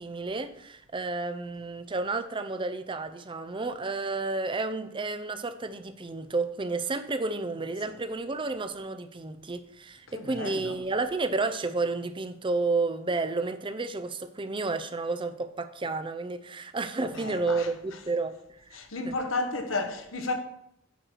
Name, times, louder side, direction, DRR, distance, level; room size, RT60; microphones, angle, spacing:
voice 1, 0.0-18.3, right 3 dB, 25° right, 0.6 m, -31 dB
voice 2, 10.1-10.8 17.0-18.0 18.7-20.3, left 3 dB, 70° left, 1.2 m, -33 dB
9.1 x 4.6 x 6.4 m
head